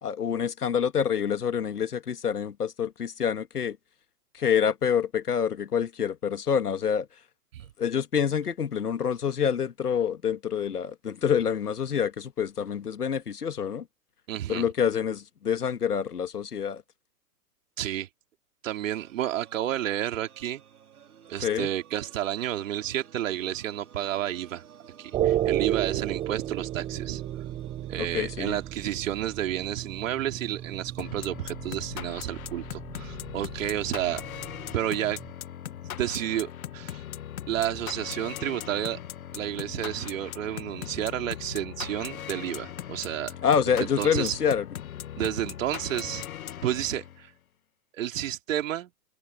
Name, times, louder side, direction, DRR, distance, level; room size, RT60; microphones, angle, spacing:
voice 1, 0.0-3.8 4.3-7.1 7.8-13.9 14.5-16.8 21.4-21.7 28.0-28.6 43.4-44.7, left 7 dB, 85° left, 2.2 m, -27 dB
voice 2, 14.3-14.6 17.8-18.1 18.6-20.6 21.3-24.6 25.0-27.2 27.9-34.2 34.7-35.2 36.0-37.0 37.5-39.0 39.3-43.3 43.8-44.4 45.2-46.3 46.6-47.3 47.9-48.9, right 12 dB, 60° right, 3.2 m, -31 dB
sound 1, 18.9-31.9, right 8 dB, 75° right, 5.1 m, -52 dB
sound 2, 25.1-35.3, right 12 dB, 15° right, 0.7 m, -33 dB
sound 3, 31.0-47.3, left 11 dB, 65° left, 1.6 m, -39 dB
open air
hypercardioid pair, 130°, 45 cm